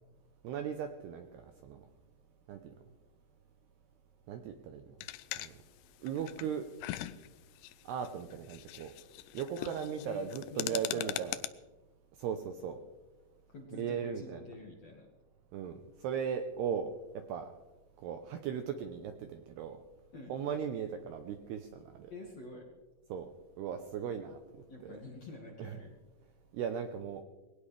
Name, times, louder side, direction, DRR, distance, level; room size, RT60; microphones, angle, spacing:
voice 1, 0.4-1.9 2.5-2.7 4.3-4.9 5.3-5.5 6.0-6.7 7.8-8.9 9.3-11.4 12.2-12.8 13.7-14.4 15.5-17.5 18.0-19.8 20.3-22.1 23.1-23.3 23.6-24.4 24.8-25.0 25.6-25.8 26.5-27.2, right 7 dB, 85° right, 6 dB, 2.4 m, -37 dB
sound 1, 5.0-11.5, left 15 dB, 85° left, 2.5 m, -41 dB
voice 2, 9.6-10.2 10.5-11.1 13.5-15.1 20.1-20.3 22.1-22.6 24.7-25.9, left 2 dB, 55° left, -1 dB, 1.9 m, -47 dB
21.5 x 18.5 x 3.4 m, 1.2 s
omnidirectional pair, 5.7 m